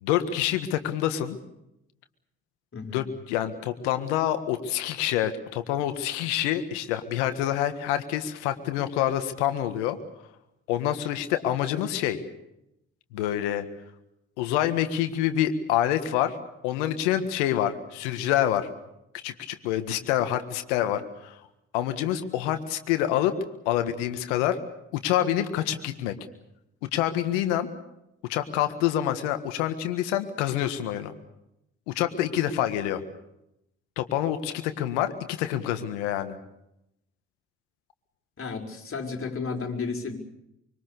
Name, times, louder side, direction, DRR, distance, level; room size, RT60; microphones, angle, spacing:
voice 1, 0.0-1.4 2.9-10.0 10.7-12.2 13.1-13.6 14.4-16.4 16.6-18.7 19.2-21.4 21.7-23.4 23.6-24.6 24.9-26.1 26.8-27.7 28.3-31.1 31.9-33.0 34.0-36.4, left 11 dB, 85° left, 9 dB, 1.7 m, -27 dB
voice 2, 2.7-3.1 38.4-40.2, left 4 dB, 40° left, 2 dB, 5.8 m, -33 dB
25.0 x 24.0 x 6.9 m, 0.83 s
hypercardioid pair, 45°, 35 cm